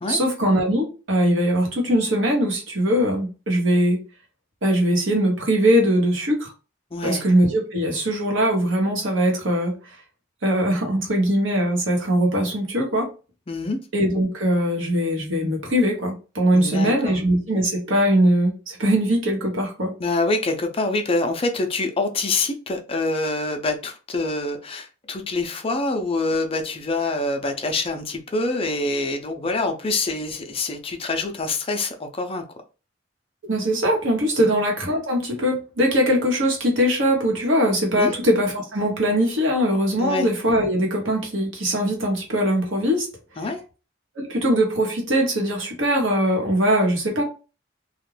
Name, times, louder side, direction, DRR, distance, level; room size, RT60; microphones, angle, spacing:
voice 1, 0.1-4.0 4.6-6.5 7.0-9.7 10.4-13.1 13.9-19.9 33.5-43.1 44.2-47.2, equal, 80° right, 1.0 m, -21 dB
voice 2, 6.9-7.2 13.5-13.8 16.5-17.1 20.0-32.4 34.4-34.5 38.0-38.2 40.0-40.3 43.4-43.6, left 2 dB, 30° left, 0.4 m, -25 dB
2.4 x 2.1 x 3.2 m
head